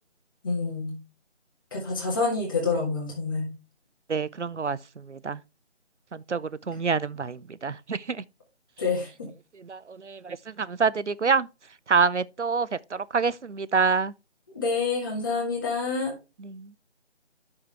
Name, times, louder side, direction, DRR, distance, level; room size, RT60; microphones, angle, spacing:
voice 1, 0.4-0.9 1.7-3.5 8.8-9.3 14.5-16.1, left 4 dB, 20° left, 1.6 m, -27 dB
voice 2, 4.1-5.4 6.1-8.2 9.6-11.5 11.9-14.1 16.4-16.7, right 5 dB, 85° right, 0.6 m, -27 dB
9.7 x 6.6 x 3.3 m
figure-of-eight pair, 155°, 35 cm